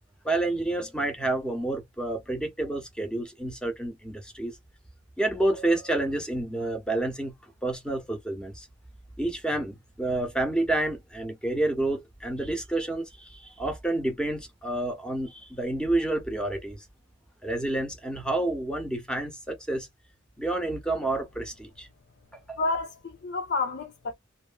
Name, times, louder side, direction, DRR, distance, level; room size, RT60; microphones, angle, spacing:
voice 1, 0.2-4.5 5.2-7.3 7.6-8.7 9.2-16.8 17.4-19.9 20.4-21.9 22.3-22.6, right 2 dB, 5° left, 0.9 m, -29 dB
voice 2, 22.6-24.1, left 3 dB, 60° left, 0.6 m, -30 dB
3.0 x 2.7 x 2.2 m
head